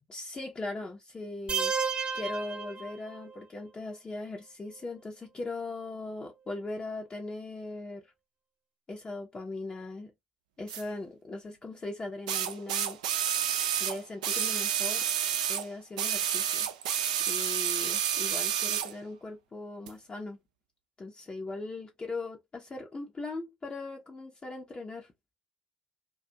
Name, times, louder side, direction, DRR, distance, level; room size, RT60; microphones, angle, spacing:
voice 1, 0.0-1.7 2.1-8.1 8.9-10.1 10.6-13.0 13.3-15.1 15.5-16.7 17.3-20.4 21.0-25.1, left 2 dB, 25° left, 0.7 m, -39 dB
sound 1, 1.5-3.4, right 5 dB, 25° right, 0.6 m, -32 dB
sound 2, 10.7-10.8 12.3-15.7 16.0-18.9 19.9-20.0, right 9 dB, 75° right, 0.4 m, -29 dB
2.4 x 2.3 x 2.7 m
figure-of-eight pair, 55°, 4 cm